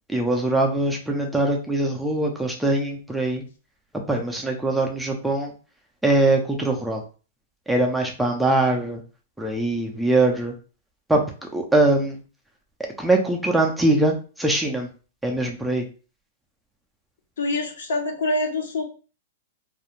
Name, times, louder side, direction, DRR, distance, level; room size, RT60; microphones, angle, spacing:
voice 1, 0.1-3.4 4.1-5.5 6.0-7.0 7.7-9.0 9.4-10.5 11.1-12.2 13.0-14.9 15.2-15.8, right 2 dB, ahead, 1 dB, 0.3 m, -22 dB
voice 2, 17.4-18.8, left 2 dB, 75° left, 3 dB, 0.7 m, -25 dB
2.4 x 2.0 x 2.9 m, 0.35 s
supercardioid pair, 165°, 0 cm